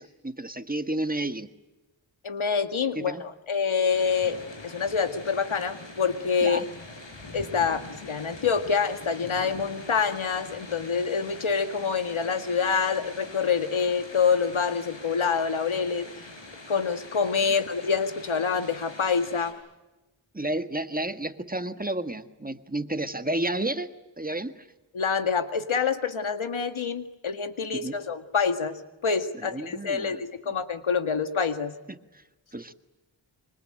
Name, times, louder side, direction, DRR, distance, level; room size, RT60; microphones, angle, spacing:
voice 1, 0.0-1.5 2.9-3.2 6.4-6.6 17.5-17.6 20.3-24.7 27.8-27.9 29.5-30.2 31.9-32.2 32.5-32.7, right 1 dB, 20° right, 9 dB, 1.6 m, -31 dB
voice 2, 2.2-4.4 4.6-6.7 7.3-16.1 16.7-19.6 24.9-31.7, left 6 dB, 80° left, 8 dB, 2.0 m, -26 dB
sound 1, 3.9-19.5, left 2 dB, 65° left, 7.9 m, -44 dB
25.5 x 25.0 x 8.9 m, 1.1 s
wide cardioid pair, 75°, 47 cm